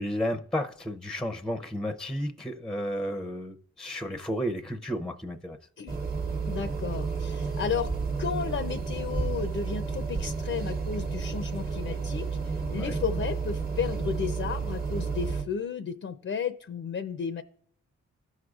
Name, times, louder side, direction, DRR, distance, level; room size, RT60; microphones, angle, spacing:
voice 1, 0.0-5.6 12.8-13.0, equal, ahead, 0.6 m, -32 dB
sound 1, 5.9-15.4, right 4 dB, 35° right, 1.1 m, -31 dB
voice 2, 6.5-7.9 8.2-17.4, left 6 dB, 45° left, 0.6 m, -33 dB
14.5 x 6.3 x 2.4 m
cardioid pair, 75°, 29 cm